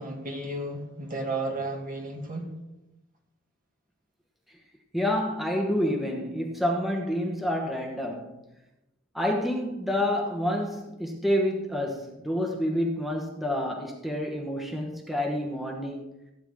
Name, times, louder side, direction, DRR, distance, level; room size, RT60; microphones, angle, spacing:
voice 1, 0.0-2.5, right 2 dB, 45° right, 2.4 m, -33 dB
voice 2, 4.9-8.3 9.1-16.1, left 1 dB, ahead, 1.2 m, -28 dB
16.5 x 9.1 x 3.7 m
head